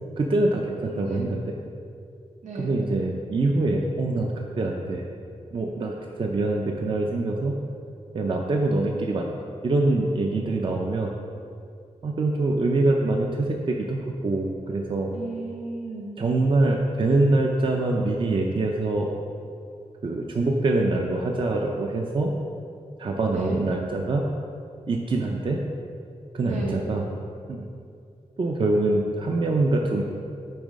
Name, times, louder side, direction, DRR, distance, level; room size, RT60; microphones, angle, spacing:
voice 1, 0.2-1.5 2.6-5.0 5.5-7.5 8.1-9.3 9.6-11.1 12.0-15.1 16.2-19.1 20.0-22.3 23.0-24.2 24.9-25.6 26.3-27.0 27.5-27.7 28.4-30.0, right 2 dB, 45° right, 1 dB, 0.5 m, -24 dB
voice 2, 0.8-1.3 2.4-2.7 15.1-16.2 23.3-23.6 26.4-26.8, right 3 dB, 85° right, -3 dB, 1.2 m, -34 dB
8.8 x 3.1 x 5.1 m, 2.4 s
wide cardioid pair, 130°, 12 cm